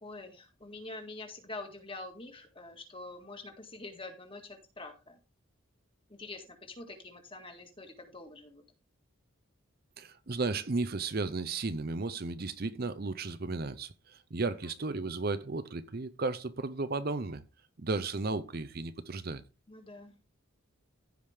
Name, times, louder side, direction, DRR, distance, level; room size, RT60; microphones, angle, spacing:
voice 1, 0.0-5.2 6.1-8.6 14.6-14.7 19.7-20.2, left 2 dB, 25° left, 1.9 m, -46 dB
voice 2, 10.0-17.4 17.8-19.4, right 3 dB, 45° right, 0.6 m, -34 dB
15.0 x 5.1 x 3.5 m
head